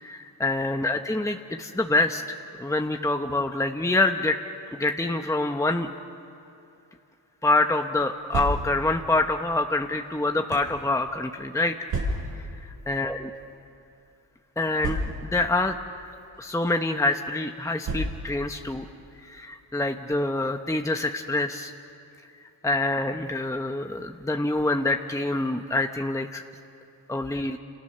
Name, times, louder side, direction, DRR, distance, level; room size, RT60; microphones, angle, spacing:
voice 1, 0.0-4.4 4.7-5.9 7.4-11.7 12.9-13.3 14.6-18.8 19.2-21.7 22.6-26.4 27.1-27.6, left 2 dB, 5° left, 5 dB, 1.1 m, -26 dB
sound 1, 8.1-9.0 9.8-10.8 11.9-12.5 13.4-13.5 13.8-13.9 14.8-15.5 16.3-16.6 17.8-18.5, right 1 dB, 75° right, 7.3 m, -31 dB
29.0 x 28.5 x 6.9 m, 2.7 s
cardioid pair, 80°, 43 cm